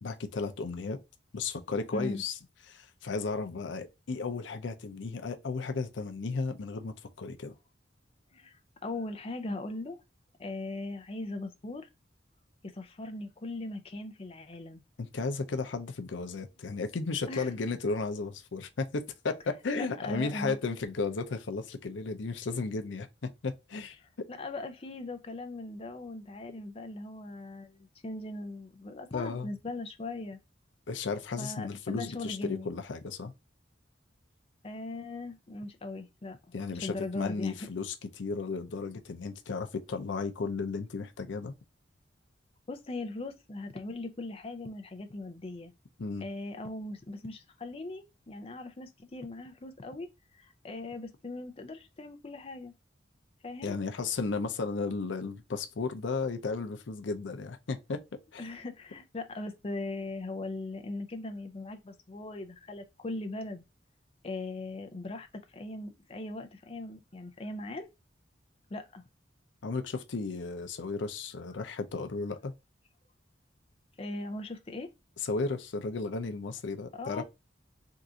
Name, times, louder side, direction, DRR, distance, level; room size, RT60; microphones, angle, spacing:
voice 1, 0.0-1.0 1.3-2.4 2.7-7.5 15.0-24.0 29.1-29.5 30.9-33.3 36.5-41.5 46.0-46.3 53.6-58.0 58.3-58.4 69.6-72.5 75.2-77.2, left 4 dB, 85° left, 0.6 m, -34 dB
voice 2, 1.9-2.2 8.3-10.0 10.4-11.9 12.7-14.8 17.3-17.5 19.8-20.6 24.3-30.4 31.4-32.7 34.6-37.6 42.7-45.7 46.2-50.1 50.3-52.7 53.4-53.7 58.4-63.6 64.2-67.9 68.7-69.0 74.0-74.9 76.9-77.2, left 2 dB, 30° left, 0.5 m, -39 dB
3.7 x 2.5 x 2.7 m
head